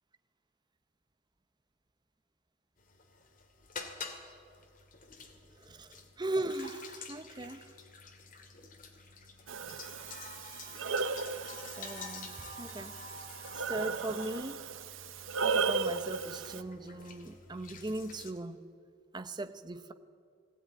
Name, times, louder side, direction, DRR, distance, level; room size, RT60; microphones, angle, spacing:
sound 1, 2.8-18.3, left 4 dB, 45° left, 2.2 m, -49 dB
voice 1, 5.6-7.7 11.8-13.0 13.5-14.6 15.4-18.6 19.1-19.9, right 2 dB, 20° right, 10 dB, 0.8 m, -39 dB
Breathing, 9.5-16.6, right 4 dB, 85° right, 0.8 m, -36 dB
20.5 x 16.5 x 9.5 m, 2.3 s
head